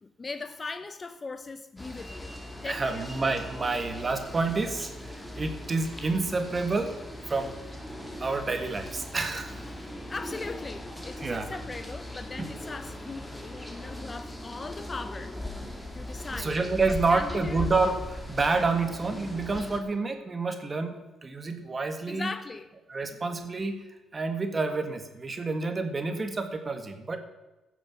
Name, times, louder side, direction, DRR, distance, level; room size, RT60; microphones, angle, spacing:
voice 1, 0.0-3.1 10.1-15.3 15.9-16.5 16.9-17.7 22.1-22.7, left 3 dB, 30° left, 0.7 m, -39 dB
sound 1, 1.8-19.8, left 1 dB, 10° left, 2.1 m, -39 dB
voice 2, 2.6-7.0 7.3-7.6 8.2-9.5 11.2-11.5 12.4-12.5 16.3-22.3 22.9-23.8 24.1-27.2, right 3 dB, 30° right, 1.7 m, -29 dB
16.0 x 7.0 x 6.1 m
cardioid pair, 90°, 0 cm